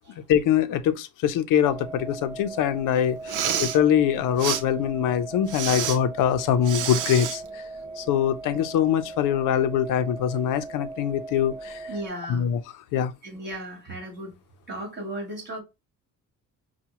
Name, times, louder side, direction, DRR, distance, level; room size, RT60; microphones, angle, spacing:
voice 1, 0.3-7.6 8.0-11.9 12.3-12.6 12.9-13.1, left 9 dB, 85° left, 0.6 m, -23 dB
sound 1, 1.6-12.1, right 2 dB, 15° right, 0.6 m, -39 dB
Respiratory sounds, 3.2-3.8 4.4-4.6 5.5-6.0 6.6-7.4, right 8 dB, 80° right, 0.8 m, -28 dB
voice 2, 11.9-12.5 13.2-14.4 14.7-15.6, right 1 dB, 35° right, 2.4 m, -35 dB
5.7 x 2.3 x 2.9 m
cardioid pair, 145°, 31 cm